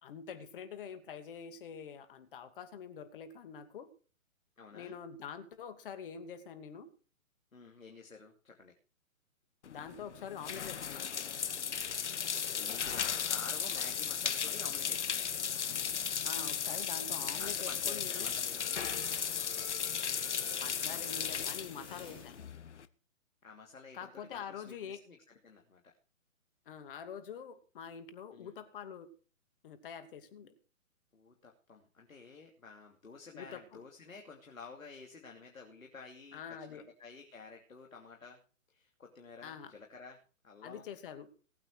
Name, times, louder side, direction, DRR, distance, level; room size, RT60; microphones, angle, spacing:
voice 1, 0.0-3.9 4.7-6.9 9.7-11.1 16.2-18.3 20.6-22.4 23.9-25.0 26.7-29.1 29.6-30.6 33.3-33.8 36.3-36.9 39.4-39.7 40.6-41.3, left 7 dB, 40° left, 11 dB, 2.6 m, -45 dB
voice 2, 4.6-5.0 7.5-8.7 12.6-15.5 17.3-18.8 23.4-25.2 25.4-25.9 28.3-28.5 31.1-38.4 38.7-40.2 40.4-40.8, left 4 dB, 70° left, 2 dB, 2.9 m, -51 dB
sound 1, 9.6-22.8, left 7 dB, 55° left, 1.2 m, -36 dB
sound 2, 18.1-22.4, left 6 dB, 10° left, 2.6 m, -51 dB
18.5 x 8.9 x 4.8 m, 0.38 s
figure-of-eight pair, 135°, 42 cm